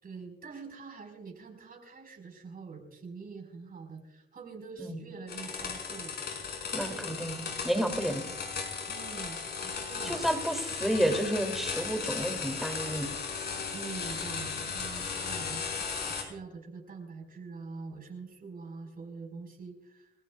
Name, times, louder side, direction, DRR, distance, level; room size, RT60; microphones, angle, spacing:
voice 1, 0.0-7.3 8.9-10.2 13.7-15.7 16.0-20.1, right 4 dB, 45° right, 3 dB, 5.0 m, -45 dB
sound 1, 5.3-16.2, left 5 dB, 55° left, 5.0 m, -36 dB
voice 2, 6.7-8.3 10.0-13.1, equal, ahead, 5 dB, 2.9 m, -31 dB
30.0 x 15.0 x 2.4 m, 0.93 s
cardioid pair, 90°, 20 cm